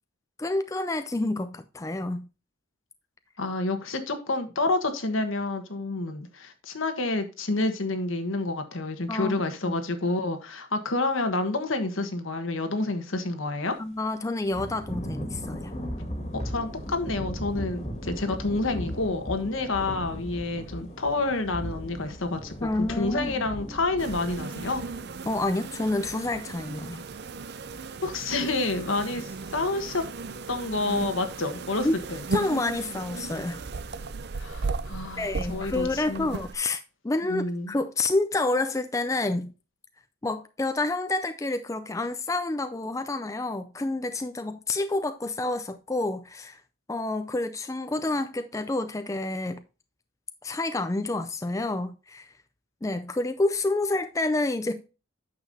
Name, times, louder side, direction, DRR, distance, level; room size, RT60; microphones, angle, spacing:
voice 1, 0.4-2.3 9.1-9.4 9.6-9.8 13.8-15.7 22.6-23.4 25.2-27.0 31.8-31.9 32.3-33.6 35.2-39.5 40.2-46.6 46.9-49.6 50.4-52.3 52.8-54.8, left 2 dB, 15° left, 0.4 m, -28 dB
voice 2, 3.4-13.8 16.4-24.8 28.0-30.0 30.5-32.2 34.3-36.3 37.2-37.7, left 2 dB, 75° left, 1.4 m, -29 dB
Thunder / Rain, 14.5-25.0, equal, 30° left, 1.8 m, -37 dB
sound 1, 24.0-36.5, right 4 dB, 50° right, 0.5 m, -36 dB
8.9 x 6.9 x 2.7 m
head